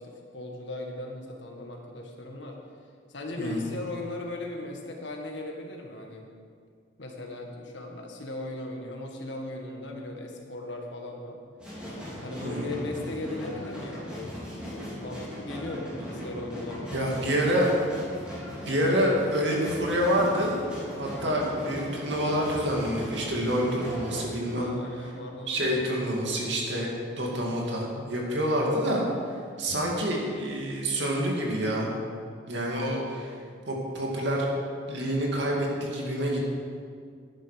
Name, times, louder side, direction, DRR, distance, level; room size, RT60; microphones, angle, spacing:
voice 1, 0.0-2.6 3.1-6.3 7.0-11.4 12.2-14.6 15.0-17.7 24.4-25.7, left 2 dB, 70° left, 1 dB, 1.7 m, -38 dB
voice 2, 3.4-3.7 12.4-12.7 16.9-17.7 18.6-20.5 21.0-24.7 25.5-29.0 29.6-31.9 32.5-33.3 33.7-34.5 34.9-36.4, equal, 65° right, -2 dB, 2.5 m, -27 dB
sound 1, 11.6-24.3, equal, 5° right, 3.3 m, -38 dB
11.5 x 10.0 x 5.1 m, 2.1 s
head